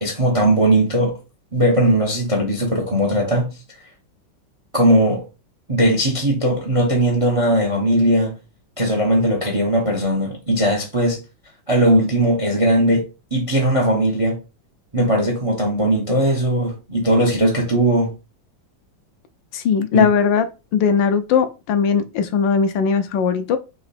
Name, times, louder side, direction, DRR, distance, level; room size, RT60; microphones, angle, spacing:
voice 1, 0.0-1.2 1.5-3.5 4.7-5.2 5.7-8.3 8.8-11.2 11.7-13.0 13.3-14.4 14.9-18.1 19.9-20.1, right 1 dB, 35° right, 0.5 m, -18 dB
voice 2, 19.5-20.5 20.7-23.6, left 6 dB, 75° left, 1.2 m, -19 dB
4.0 x 3.0 x 4.1 m
omnidirectional pair, 2.1 m